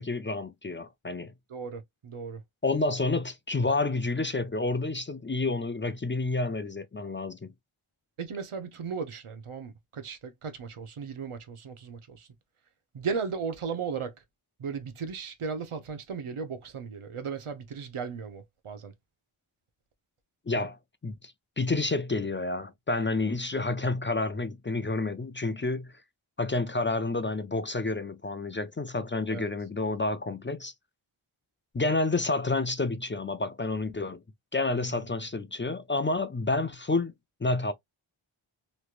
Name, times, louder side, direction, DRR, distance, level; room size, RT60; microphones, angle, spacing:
voice 1, 0.0-1.3 2.6-7.5 20.5-20.8 21.0-25.9 26.4-30.7 31.7-34.2 34.5-37.1 37.4-37.7, left 3 dB, 25° left, 0.4 m, -29 dB
voice 2, 1.5-2.4 8.2-12.3 12.9-14.1 14.6-18.9 29.3-29.5 34.7-35.0, right 5 dB, 85° right, 0.9 m, -36 dB
3.2 x 3.0 x 2.4 m
wide cardioid pair, 80°, 49 cm